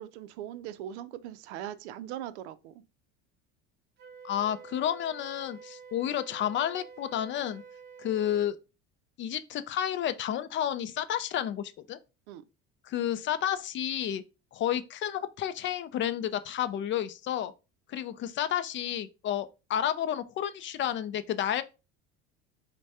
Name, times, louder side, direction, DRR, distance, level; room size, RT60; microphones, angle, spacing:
voice 1, 0.0-2.7 12.3-12.4, right 11 dB, 85° right, 0.5 m, -40 dB
Wind instrument woodwind instrument, 4.0-8.5, right 5 dB, 30° right, 0.5 m, -49 dB
voice 2, 4.2-7.6 8.0-8.6 9.2-12.0 12.8-14.2 14.5-17.5 17.9-21.6, left 10 dB, 35° left, 0.4 m, -31 dB
4.5 x 2.2 x 2.7 m
supercardioid pair, 95°, 33 cm